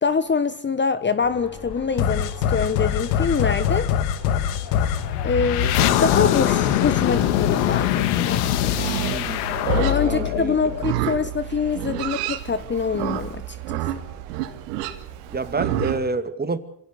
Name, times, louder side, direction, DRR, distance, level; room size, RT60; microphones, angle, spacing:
voice 1, 0.0-3.9 5.2-9.0 9.8-13.8, left 5 dB, 25° left, 1.2 m, -25 dB
sound 1, 1.2-6.8, left 4 dB, 55° left, 6.4 m, -40 dB
sound 2, 2.0-11.3, left 10 dB, 80° left, 2.2 m, -22 dB
Livestock farm animals working animals, 8.7-16.0, right 12 dB, 85° right, 2.6 m, -29 dB
voice 2, 9.1-9.4 10.0-10.6 15.3-16.6, right 4 dB, 20° right, 2.4 m, -27 dB
26.5 x 17.0 x 6.7 m
supercardioid pair, 90°, 46 cm